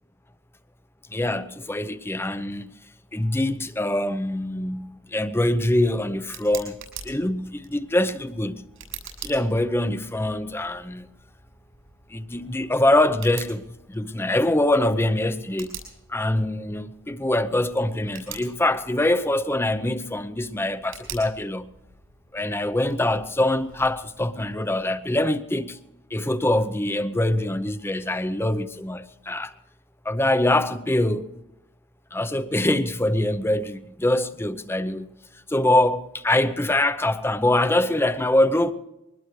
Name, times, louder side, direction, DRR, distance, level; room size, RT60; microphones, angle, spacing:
voice 1, 1.1-2.7 3.1-6.8 7.0-8.7 9.2-11.1 12.1-15.8 16.1-21.7 22.3-25.8 26.1-29.5 30.0-31.2 32.1-35.1 35.5-38.7, left 1 dB, 10° left, 0.7 m, -24 dB
Tick, 5.3-25.0, right 7 dB, 90° right, 7.7 m, -46 dB
23.0 x 20.0 x 3.2 m
head